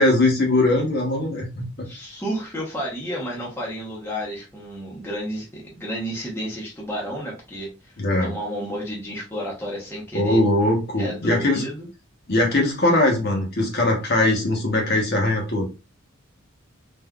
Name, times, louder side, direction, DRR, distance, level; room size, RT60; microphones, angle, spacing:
voice 1, 0.0-1.6 8.0-8.3 10.1-11.6 12.3-15.7, left 2 dB, 50° left, 0 dB, 0.9 m, -20 dB
voice 2, 1.8-7.9 8.2-10.4 11.0-11.9, equal, 10° left, -4 dB, 0.8 m, -31 dB
3.6 x 2.5 x 2.3 m, 0.28 s
head